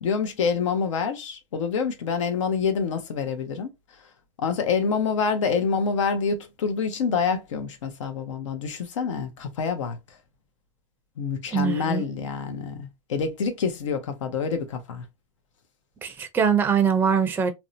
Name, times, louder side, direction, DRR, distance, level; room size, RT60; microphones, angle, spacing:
voice 1, 0.0-3.7 4.4-10.2 11.2-15.1, left 5 dB, 90° left, 0.7 m, -27 dB
voice 2, 11.5-12.0 16.0-17.5, right 7 dB, 15° right, 0.4 m, -22 dB
2.6 x 2.1 x 2.5 m
supercardioid pair, 120°, 16 cm